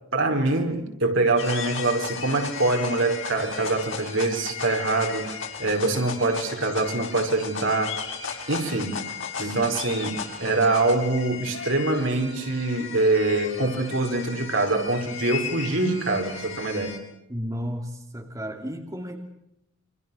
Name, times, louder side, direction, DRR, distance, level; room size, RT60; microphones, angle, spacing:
voice 1, 0.1-8.0 8.5-9.1 9.4-17.0, right 2 dB, 70° right, 3 dB, 5.1 m, -24 dB
sound 1, 1.4-17.0, left 6 dB, 65° left, 6.3 m, -35 dB
voice 2, 17.3-19.2, equal, 15° right, 2 dB, 2.8 m, -33 dB
28.5 x 26.5 x 7.3 m, 0.84 s
head